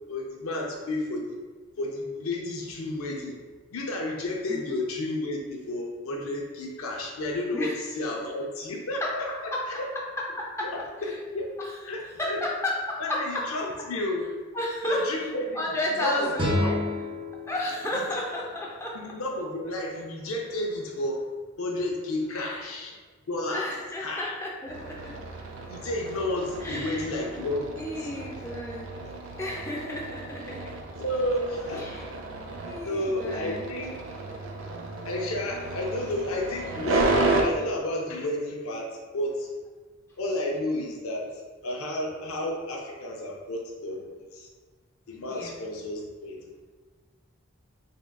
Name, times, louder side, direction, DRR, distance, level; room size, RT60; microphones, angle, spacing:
voice 1, 0.1-1.3 1.8-3.4 3.7-9.3 10.6-11.5 11.8-12.4 13.0-14.3 14.8-15.6 16.0-16.8 17.9-18.0 18.9-21.2 21.6-23.0 23.3-23.7 24.0-24.3 25.7-28.1 29.0-29.2 31.0-32.0 32.8-33.9 35.0-39.5 40.2-41.3 41.6-44.1 44.3-44.5 45.1-46.5, left 1 dB, 85° left, 0 dB, 0.5 m, -31 dB
voice 2, 9.0-9.8 10.2-10.7 11.0-11.2 11.6-11.8 12.2-13.5 14.5-15.1 15.5-16.5 17.5-19.0 22.3-22.6 23.5-25.1 26.6-27.1 27.8-28.9 29.4-30.7 31.8-32.0 32.6-33.6 45.3-45.6, left 1 dB, 15° left, -3 dB, 0.4 m, -32 dB
sound 1, 16.3-19.4, left 1 dB, 25° right, 0.7 m, -31 dB
sound 2, 24.7-37.4, right 2 dB, 65° right, 0.4 m, -32 dB
3.6 x 3.5 x 2.2 m, 1.4 s
head